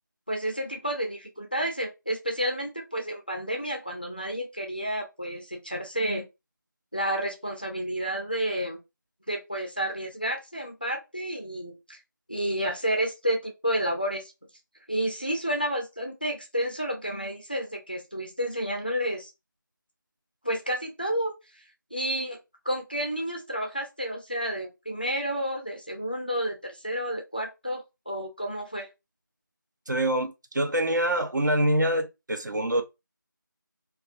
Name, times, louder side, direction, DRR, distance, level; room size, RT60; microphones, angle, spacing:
voice 1, 0.3-6.2 6.9-8.8 9.3-12.0 12.3-14.3 14.9-19.3 20.4-21.6 21.9-22.4 22.6-28.9, equal, 25° left, 0.4 m, -30 dB
voice 2, 29.9-32.8, right 1 dB, 60° right, 0.5 m, -25 dB
2.3 x 2.2 x 2.5 m
figure-of-eight pair, 175°, 11 cm